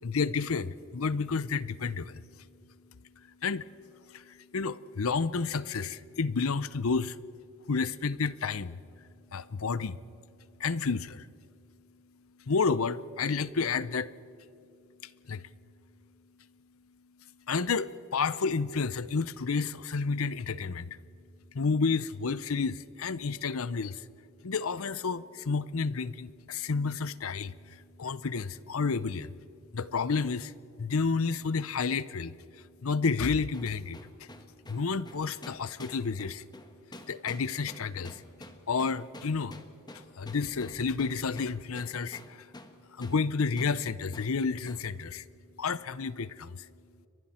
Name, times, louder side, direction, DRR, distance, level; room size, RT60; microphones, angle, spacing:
voice 1, 0.0-2.4 3.2-3.7 4.1-7.2 7.7-8.8 9.3-10.0 10.6-11.3 12.5-14.1 15.0-15.5 17.5-21.0 21.5-24.1 24.4-29.4 29.7-30.5 30.8-34.3 34.7-36.4 37.1-38.2 38.7-39.6 39.9-42.5 42.9-45.2 45.6-46.7, left 4 dB, 80° left, 17 dB, 0.7 m, -31 dB
sound 1, 33.5-42.8 43.0-43.2 43.6-43.8 44.1-44.3 44.7-44.9, left 1 dB, 20° left, 1.5 m, -48 dB
30.0 x 23.5 x 4.4 m, 2.7 s
head